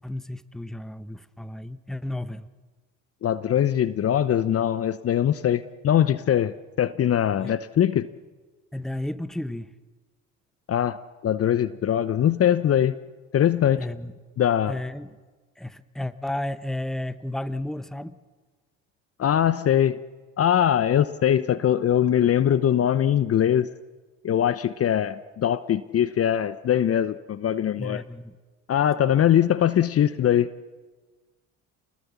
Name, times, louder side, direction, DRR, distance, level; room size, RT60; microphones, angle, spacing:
voice 1, 0.0-2.5 7.3-7.6 8.7-9.7 13.8-14.1 14.7-15.2 15.6-18.2 27.8-28.4, left 1 dB, ahead, 14 dB, 1.1 m, -33 dB
voice 2, 3.2-8.1 10.7-11.0 11.2-13.0 13.3-13.8 14.4-14.7 19.2-20.0 20.4-23.7 24.2-28.0 28.7-30.5, left 10 dB, 35° left, 15 dB, 0.9 m, -22 dB
29.0 x 20.5 x 7.1 m, 1.3 s
hypercardioid pair, 65°, 40 cm